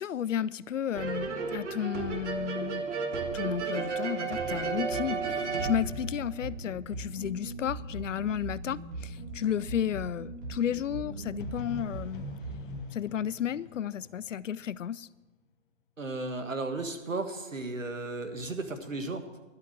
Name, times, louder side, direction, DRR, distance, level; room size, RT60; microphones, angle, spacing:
voice 1, 0.0-2.8 3.3-12.3 12.9-15.1, left 9 dB, 75° left, 0.5 m, -33 dB
sound 1, 0.9-6.7, right 5 dB, 65° right, 1.8 m, -33 dB
sound 2, 4.9-12.9, right 2 dB, 40° right, 4.9 m, -40 dB
sound 3, 11.4-15.3, left 7 dB, 40° left, 1.1 m, -47 dB
voice 2, 16.0-19.3, right 3 dB, 85° right, 1.7 m, -34 dB
11.5 x 8.1 x 7.5 m
figure-of-eight pair, 130°, 38 cm